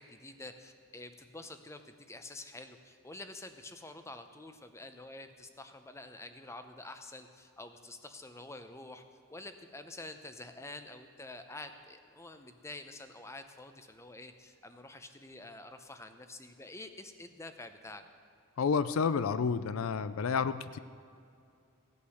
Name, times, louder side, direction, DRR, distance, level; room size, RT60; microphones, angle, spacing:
voice 1, 0.0-9.0 9.3-18.0, left 2 dB, 15° left, 8 dB, 0.7 m, -48 dB
voice 2, 18.6-20.8, left 5 dB, 75° left, 13 dB, 0.4 m, -30 dB
16.0 x 8.6 x 6.4 m, 2.4 s
head